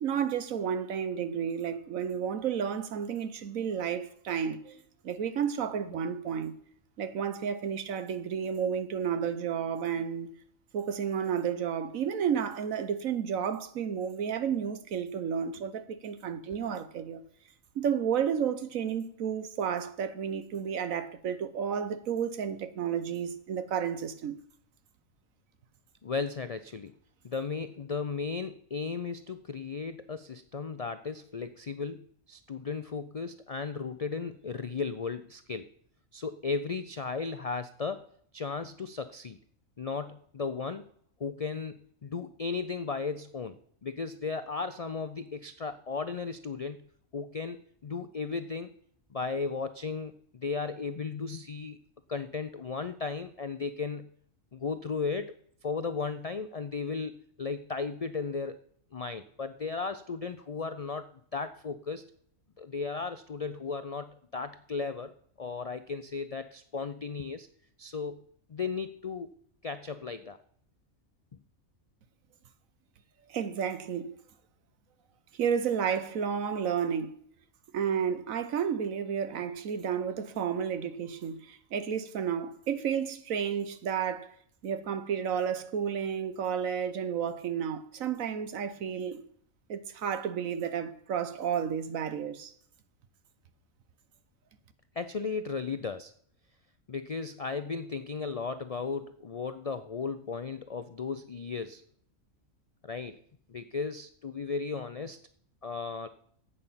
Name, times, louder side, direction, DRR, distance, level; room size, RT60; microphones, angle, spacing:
voice 1, 0.0-4.8 5.0-6.5 7.0-10.3 10.7-17.2 17.7-24.4 73.3-74.1 75.3-77.2 77.7-84.3 84.6-89.2 89.7-92.5, right 7 dB, 80° right, 1.3 m, -31 dB
voice 2, 26.0-26.9 27.2-35.7 36.1-38.1 38.3-39.4 39.8-40.9 41.2-46.8 47.1-47.6 47.8-48.7 49.1-51.8 52.1-54.1 54.5-55.4 55.6-58.6 58.9-62.1 62.6-67.5 67.8-68.2 68.5-69.3 69.6-70.4 95.0-96.1 96.9-101.8 102.8-103.2 103.5-105.2 105.6-106.1, left 4 dB, 65° left, 0.3 m, -35 dB
11.0 x 8.5 x 5.6 m
omnidirectional pair, 1.4 m